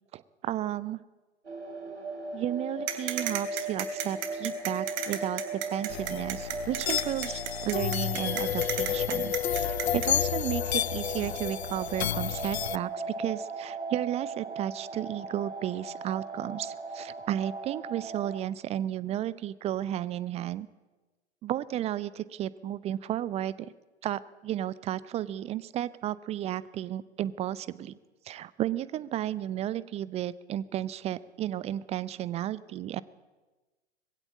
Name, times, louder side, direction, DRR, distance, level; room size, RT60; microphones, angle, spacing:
voice 1, 0.1-1.0 2.3-20.7 21.4-23.7 24.0-28.0 28.2-33.0, right 12 dB, 20° right, 19 dB, 0.6 m, -33 dB
sound 1, 1.4-18.4, right 3 dB, 80° right, 3.2 m, -38 dB
sound 2, 2.9-10.1, right 12 dB, 35° right, 2.9 m, -34 dB
sound 3, 5.9-12.8, left 10 dB, 65° left, 0.6 m, -31 dB
21.0 x 16.0 x 8.3 m, 1.2 s
figure-of-eight pair, 100°, 34 cm